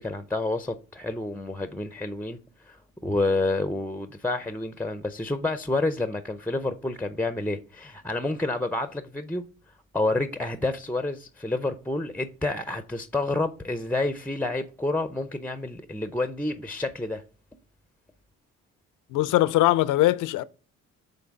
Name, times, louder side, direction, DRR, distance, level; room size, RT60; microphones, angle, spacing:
voice 1, 0.0-2.4 2.7-2.8 3.0-9.4 9.9-17.2, left 2 dB, 5° left, 0.5 m, -29 dB
voice 2, 19.1-20.4, left 16 dB, 85° left, 0.5 m, -21 dB
5.9 x 3.8 x 5.2 m
cardioid pair, 90°, 30 cm